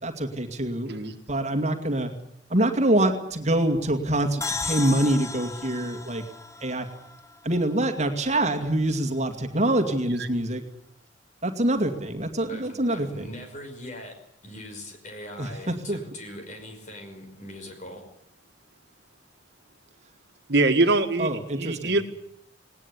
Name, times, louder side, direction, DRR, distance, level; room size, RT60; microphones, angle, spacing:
voice 1, 0.0-0.9 1.3-2.1 2.5-6.2 6.6-6.9 7.4-10.6 11.4-13.3 15.4-16.0 21.2-22.0, right 1 dB, 35° right, 5 dB, 2.3 m, -25 dB
sound 1, 4.4-8.0, left 4 dB, 15° left, 1.0 m, -35 dB
voice 2, 12.5-14.2 14.4-18.0, left 1 dB, 40° left, 5 dB, 5.6 m, -41 dB
voice 3, 20.5-22.0, right 2 dB, 60° right, 6 dB, 1.9 m, -23 dB
19.0 x 19.0 x 10.0 m, 0.76 s
head